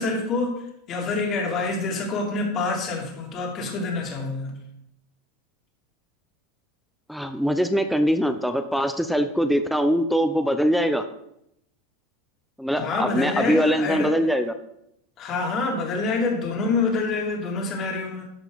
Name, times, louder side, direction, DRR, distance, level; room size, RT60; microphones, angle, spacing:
voice 1, 0.0-4.5 12.8-14.2 15.2-18.2, left 3 dB, 40° left, 1 dB, 2.7 m, -26 dB
voice 2, 7.1-11.0 12.6-14.5, equal, ahead, 8 dB, 0.7 m, -22 dB
13.0 x 5.4 x 4.1 m, 0.77 s
supercardioid pair, 120°, 0 cm